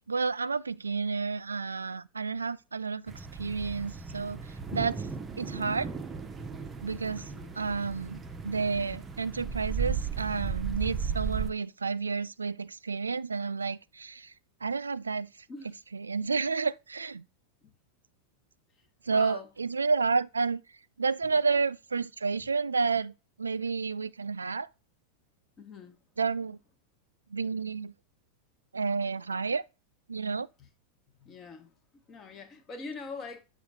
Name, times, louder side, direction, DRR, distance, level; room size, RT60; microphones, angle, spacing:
voice 1, 0.1-4.4 4.7-5.1 5.4-5.9 6.8-7.2 7.6-14.3 14.6-15.3 15.9-17.2 19.1-20.6 21.0-23.1 23.4-24.7 26.2-26.6 27.3-27.9 28.7-29.6 30.1-30.5, right 4 dB, 75° right, 0.3 m, -30 dB
sound 1, 3.1-11.5, right 6 dB, 15° right, 0.7 m, -36 dB
voice 2, 7.2-7.5 15.5-15.8 17.6-17.7 18.8-19.5 22.4-22.5 25.6-26.0 30.6-30.7 31.2-33.4, left 4 dB, 25° left, 1.2 m, -44 dB
7.0 x 2.5 x 5.5 m
figure-of-eight pair, 90°, 0 cm